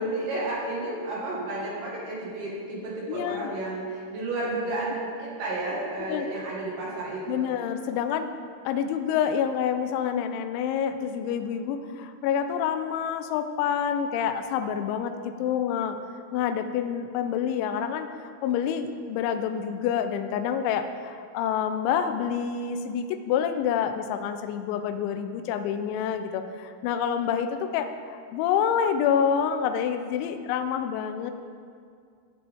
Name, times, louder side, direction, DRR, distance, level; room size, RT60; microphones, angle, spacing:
voice 1, 0.0-7.5, right 2 dB, 60° right, -5 dB, 2.4 m, -32 dB
voice 2, 3.1-3.5 6.0-6.3 7.3-8.3 8.7-16.0 16.3-31.3, left 8 dB, 85° left, 8 dB, 2.7 m, -27 dB
15.5 x 7.9 x 3.5 m, 2.2 s
omnidirectional pair, 6.0 m